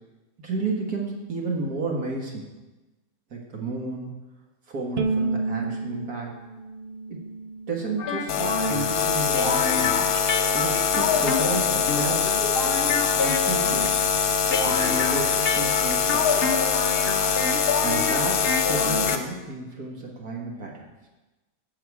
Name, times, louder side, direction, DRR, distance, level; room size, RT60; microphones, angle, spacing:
voice 1, 0.4-2.5 3.3-4.1 4.7-6.4 7.1-7.2 7.7-10.1 10.5-12.4 13.2-13.9 14.7-16.6 17.8-20.9, right 3 dB, 70° right, -1 dB, 2.1 m, -32 dB
Bowed string instrument, 5.0-8.2, right 3 dB, 50° right, 0.9 m, -30 dB
sound 1, 8.0-19.2, left 5 dB, 45° left, 1.1 m, -28 dB
sound 2, 8.3-19.2, left 6 dB, 80° left, 1.5 m, -24 dB
16.0 x 7.8 x 4.8 m, 1.1 s
omnidirectional pair, 1.6 m